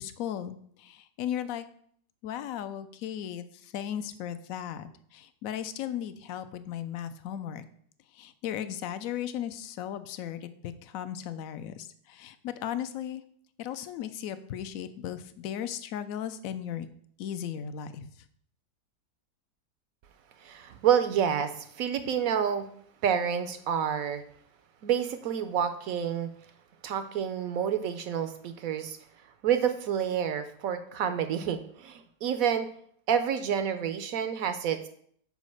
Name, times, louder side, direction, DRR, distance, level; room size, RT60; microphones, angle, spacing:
voice 1, 0.0-1.7 2.2-7.6 8.1-13.2 13.6-16.9 17.2-18.1, left 10 dB, 70° left, 12 dB, 0.8 m, -36 dB
voice 2, 20.4-22.7 23.0-24.2 24.8-26.3 26.8-29.0 29.4-32.7 33.1-34.9, right 8 dB, 70° right, 10 dB, 0.9 m, -28 dB
5.3 x 4.9 x 6.3 m, 0.63 s
omnidirectional pair, 1.8 m